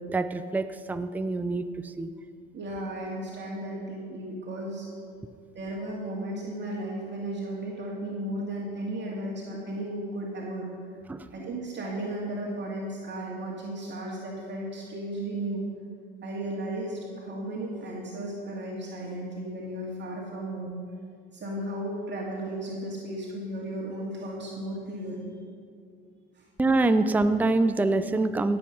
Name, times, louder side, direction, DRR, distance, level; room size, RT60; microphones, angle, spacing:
voice 1, 0.0-2.1 11.1-11.3 26.6-28.6, right 2 dB, 5° right, 10 dB, 0.5 m, -25 dB
voice 2, 2.5-4.9 5.5-10.7 11.3-15.6 16.2-20.8 21.3-25.4 26.3-26.4, right 1 dB, 35° right, -3 dB, 2.3 m, -35 dB
17.0 x 7.9 x 5.4 m, 2.2 s
hypercardioid pair, 85°, 31 cm